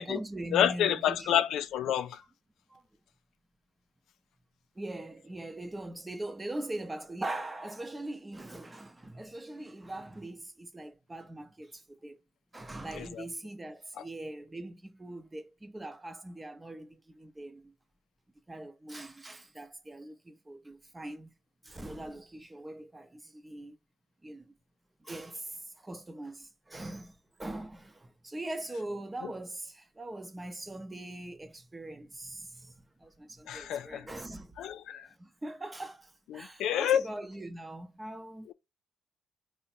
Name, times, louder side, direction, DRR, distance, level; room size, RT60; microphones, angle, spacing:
voice 1, 0.0-1.4 2.7-2.8 4.8-12.2 12.5-17.7 18.5-21.3 21.6-23.8 24.2-24.5 25.0-34.5 34.9-38.5, right 1 dB, 15° right, 0.7 m, -41 dB
voice 2, 0.5-2.2 12.9-13.2 14.0-14.1 33.5-34.1 34.6-35.1 36.3-37.1 38.5-38.6, left 10 dB, 80° left, 0.4 m, -29 dB
3.7 x 2.1 x 4.3 m
cardioid pair, 90°, 0 cm